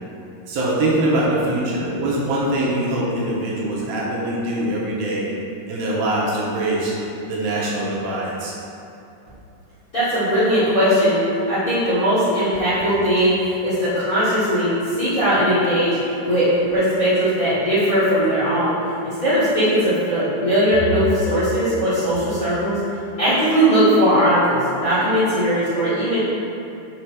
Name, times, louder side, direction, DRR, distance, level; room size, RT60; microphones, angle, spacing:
voice 1, 0.5-5.3 5.7-7.0 7.3-8.5, right 1 dB, 75° right, -5 dB, 2.6 m, -23 dB
voice 2, 9.9-11.2 11.5-14.7 14.9-16.0 16.3-18.7 19.0-22.8 23.2-26.2, equal, 85° left, -12 dB, 0.7 m, -19 dB
6.6 x 5.0 x 4.6 m, 2.7 s
omnidirectional pair, 4.5 m